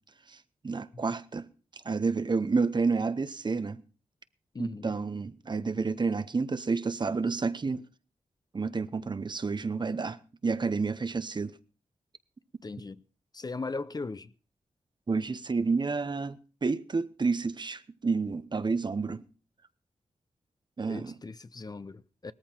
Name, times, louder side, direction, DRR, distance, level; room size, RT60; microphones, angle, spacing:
voice 1, 0.6-1.5 1.8-3.8 4.6-7.8 8.5-10.2 10.4-11.6 15.1-19.2 20.8-21.1, right 4 dB, 40° right, 0.9 m, -30 dB
voice 2, 4.5-4.9 12.6-13.0 13.3-14.3 20.9-22.3, left 3 dB, 35° left, 0.7 m, -38 dB
18.0 x 14.0 x 4.5 m
cardioid pair, 75°, 12 cm